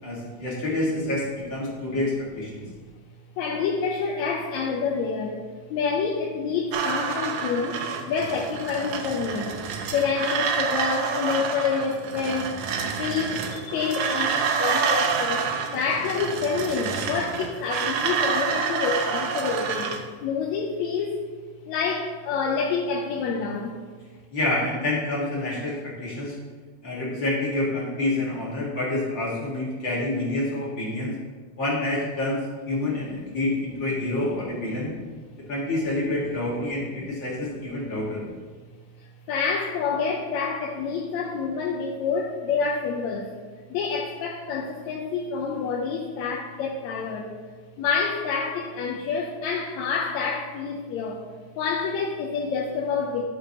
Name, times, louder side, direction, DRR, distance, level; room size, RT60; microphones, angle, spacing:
voice 1, 0.0-2.6 24.3-26.4 26.8-31.1 31.6-34.9 35.5-38.2, left 2 dB, 40° left, -5 dB, 2.3 m, -27 dB
voice 2, 3.4-5.4 5.7-9.5 9.9-15.5 15.7-19.9 20.2-21.2 21.7-23.7 34.9-35.1 38.0-38.4 39.3-43.3 43.7-47.3 47.8-51.2 51.6-53.2, left 5 dB, 80° left, -1 dB, 1.9 m, -28 dB
sound 1, 6.7-20.0, right 6 dB, 75° right, 2.0 m, -28 dB
12.5 x 6.2 x 2.9 m, 1.4 s
omnidirectional pair, 3.4 m